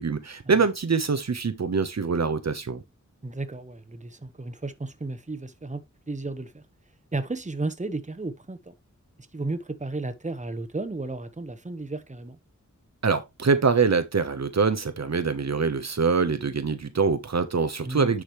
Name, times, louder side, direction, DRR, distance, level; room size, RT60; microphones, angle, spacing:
voice 1, 0.0-2.8 13.0-18.2, right 5 dB, 60° right, 0.9 m, -24 dB
voice 2, 3.2-6.6 7.1-8.7 9.3-12.4 17.8-18.2, right 2 dB, 25° right, 1.1 m, -33 dB
10.0 x 5.1 x 3.1 m
wide cardioid pair, 75°, 30 cm